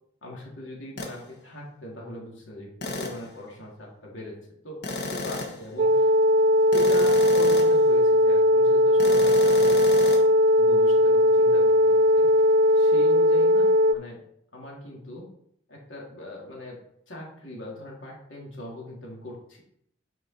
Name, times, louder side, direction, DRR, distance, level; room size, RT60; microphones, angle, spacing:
voice 1, 0.2-6.1 6.7-9.8 10.6-12.3 12.7-14.2 14.5-15.3 15.7-16.8 17.1-19.6, left 1 dB, 75° left, -2 dB, 2.9 m, -40 dB
sound 1, 1.0-1.2 2.8-3.3 4.8-5.7 6.7-7.8 9.0-10.2, left 2 dB, 60° left, 1.5 m, -32 dB
sound 2, 5.8-13.9, left 1 dB, 45° right, 0.3 m, -19 dB
9.4 x 5.3 x 4.4 m, 0.72 s
head